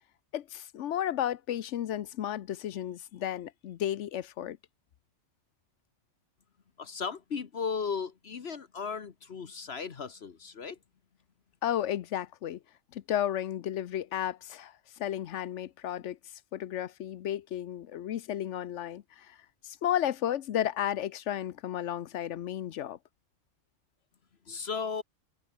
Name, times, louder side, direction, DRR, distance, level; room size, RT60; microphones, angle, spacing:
voice 1, 0.3-4.6 11.6-12.6 12.9-16.2 16.5-19.4 19.6-23.0, left 11 dB, 80° left, 1.0 m, -33 dB
voice 2, 6.8-10.8 24.5-25.0, left 5 dB, 60° left, 1.4 m, -36 dB
omnidirectional pair, 1.2 m